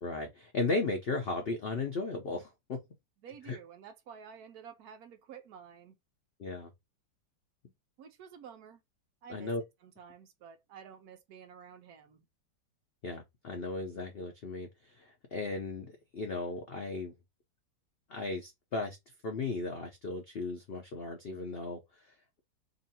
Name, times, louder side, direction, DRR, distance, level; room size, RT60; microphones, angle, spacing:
voice 1, 0.0-2.8 3.5-3.6 6.4-6.7 9.3-9.6 13.0-17.1 18.1-19.0 19.2-22.1, left 3 dB, 75° left, 0.5 m, -36 dB
voice 2, 3.2-5.9 8.0-8.8 9.2-9.5 9.8-12.2, right 7 dB, 70° right, 1.0 m, -51 dB
3.0 x 2.7 x 4.0 m
omnidirectional pair, 1.9 m